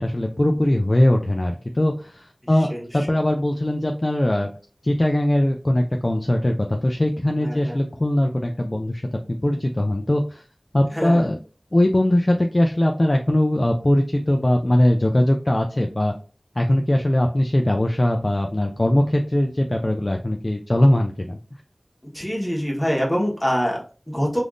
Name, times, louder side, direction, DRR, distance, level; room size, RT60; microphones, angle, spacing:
voice 1, 0.0-4.5 4.8-10.4 10.7-11.4 11.7-16.1 16.6-21.4, left 1 dB, 40° left, 2 dB, 0.4 m, -20 dB
voice 2, 7.4-7.8 10.9-11.2 22.1-24.4, equal, 20° left, -2 dB, 1.2 m, -24 dB
3.4 x 2.5 x 2.4 m, 0.37 s
wide cardioid pair, 45°, 0 cm